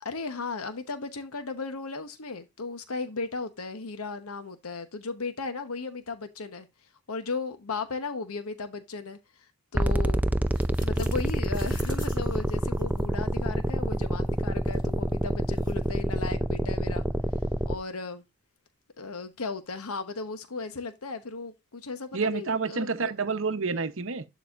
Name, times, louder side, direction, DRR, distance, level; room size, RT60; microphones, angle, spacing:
voice 1, 0.0-6.7 7.1-9.2 9.7-10.2 10.8-17.0 17.7-18.2 19.0-23.1, left 4 dB, 75° left, 0.9 m, -36 dB
sound 1, 9.7-17.8, right 1 dB, 5° right, 0.3 m, -27 dB
sound 2, 10.5-16.0, left 1 dB, 20° left, 2.6 m, -51 dB
voice 2, 22.1-24.2, right 4 dB, 60° right, 0.8 m, -29 dB
11.5 x 4.2 x 2.4 m
head